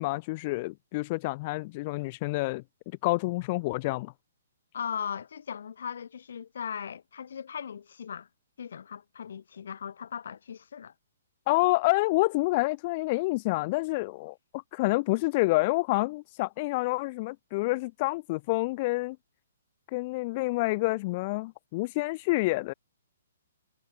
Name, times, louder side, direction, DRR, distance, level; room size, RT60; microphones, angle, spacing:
voice 1, 0.0-2.6 3.0-4.1 11.5-19.2 19.9-22.7, left 22 dB, 30° left, 0.5 m, -28 dB
voice 2, 4.7-8.3 8.6-10.9, left 7 dB, 70° left, 1.4 m, -38 dB
hypercardioid pair, 165°, 0 cm